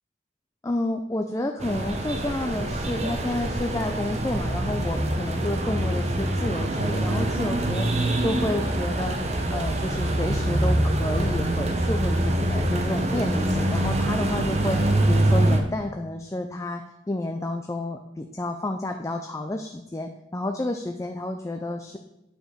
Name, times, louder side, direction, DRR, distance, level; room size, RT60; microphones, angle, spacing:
voice 1, 0.6-7.9 8.2-22.0, left 1 dB, 15° left, 4 dB, 0.4 m, -30 dB
sound 1, 1.6-15.6, right 1 dB, 35° right, 0.8 m, -25 dB
9.0 x 5.0 x 5.1 m, 0.90 s
head